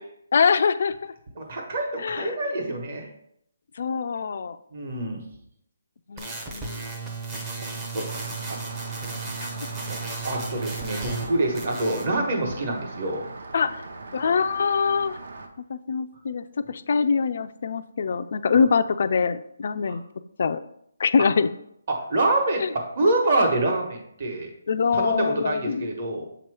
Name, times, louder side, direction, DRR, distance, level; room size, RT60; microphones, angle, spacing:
voice 1, 0.3-1.1 2.0-2.2 3.8-4.6 6.1-6.8 9.4-9.5 13.5-13.8 14.1-15.1 15.7-20.0 20.4-20.6 21.0-21.5 22.6-22.7 24.7-25.9, left 5 dB, 45° left, 11 dB, 0.3 m, -24 dB
voice 2, 1.3-3.1 4.7-5.2 7.6-8.6 9.8-13.2 18.5-18.7 19.8-20.0 21.9-24.5 24.9-26.2, right 2 dB, 40° right, 1 dB, 1.1 m, -26 dB
sound 1, 6.2-11.3 11.6-12.1, right 3 dB, 10° right, 0.6 m, -34 dB
Rain, 8.0-15.5, right 3 dB, 60° right, 0.7 m, -40 dB
6.8 x 2.9 x 4.7 m, 0.73 s
hypercardioid pair, 175°, 0 cm